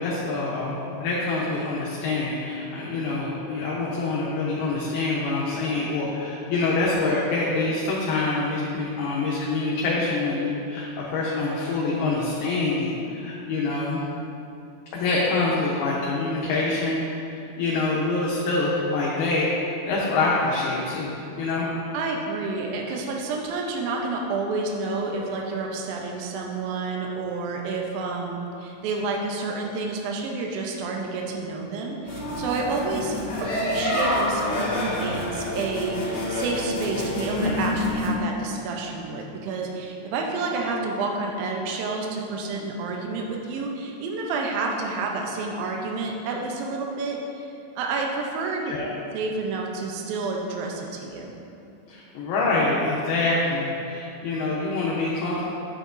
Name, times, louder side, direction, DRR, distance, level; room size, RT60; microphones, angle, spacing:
voice 1, 0.0-14.0 14.9-17.0 17.3-21.7 48.7-48.9 51.9-55.5, left 3 dB, 75° left, -6 dB, 2.4 m, -26 dB
voice 2, 21.9-48.7 49.1-51.3, right 3 dB, 85° right, 0 dB, 2.0 m, -29 dB
sound 1, 32.1-38.1, left 1 dB, 50° left, 2.1 m, -27 dB
9.2 x 8.1 x 2.6 m, 2.7 s
omnidirectional pair, 5.1 m